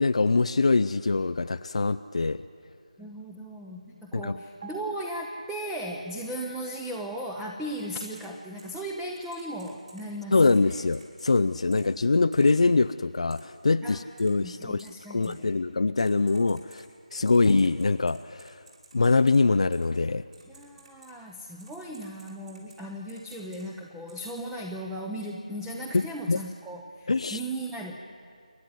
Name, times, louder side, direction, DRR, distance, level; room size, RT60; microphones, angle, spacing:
voice 1, 0.0-2.4 4.1-4.4 10.3-16.8 17.1-18.5 18.9-20.2 25.9-26.4 27.1-27.4, left 3 dB, 55° left, 13 dB, 0.5 m, -24 dB
voice 2, 3.0-10.8 11.8-11.9 13.8-14.0 14.4-15.5 20.5-28.2, right 1 dB, 5° right, 0 dB, 0.8 m, -37 dB
sound 1, 4.6-6.2 6.5-6.7, right 5 dB, 35° right, 2.4 m, -48 dB
Typing, 8.1-8.3 8.6-8.7 9.3-10.0 10.5-11.3 11.7-11.8 12.3-12.6 13.3-13.4 14.2-14.3 14.8-14.9 15.2-15.3 16.0-16.8 17.3-19.4 19.7-19.8 20.3-21.1 21.6-22.8 23.1-23.6 24.1-24.4, right 3 dB, 60° right, 5.9 m, -53 dB
28.0 x 11.5 x 9.6 m, 2.2 s
figure-of-eight pair, 160°, 4 cm